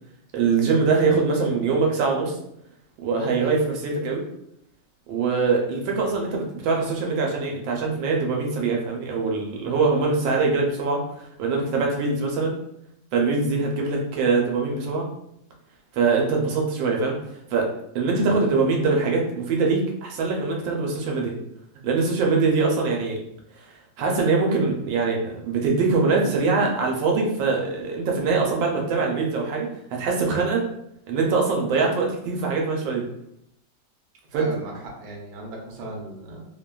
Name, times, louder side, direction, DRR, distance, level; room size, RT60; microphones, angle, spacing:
voice 1, 0.3-2.4 3.0-4.2 5.1-12.6 13.1-15.1 15.9-17.2 17.5-21.3 21.8-23.2 23.6-23.7 24.0-30.6 31.1-33.1 34.3-34.5, right 4 dB, 85° right, 0 dB, 1.3 m, -23 dB
voice 2, 34.3-36.4, right 1 dB, 65° right, -1 dB, 1.1 m, -37 dB
3.1 x 2.2 x 2.2 m, 0.76 s
omnidirectional pair, 2.0 m